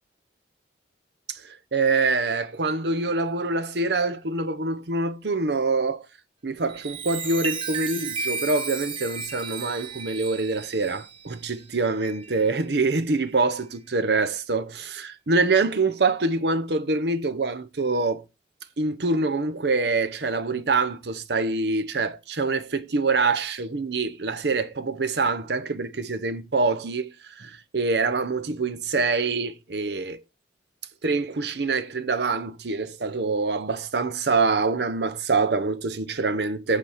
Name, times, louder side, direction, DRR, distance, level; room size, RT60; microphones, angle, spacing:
voice 1, 1.3-6.0 6.4-18.2 18.8-30.2 31.0-36.8, right 3 dB, 65° right, 0.8 m, -25 dB
Chime, 6.6-12.6 13.1-13.4, right 5 dB, 30° right, 1.0 m, -34 dB
8.3 x 4.6 x 6.4 m
head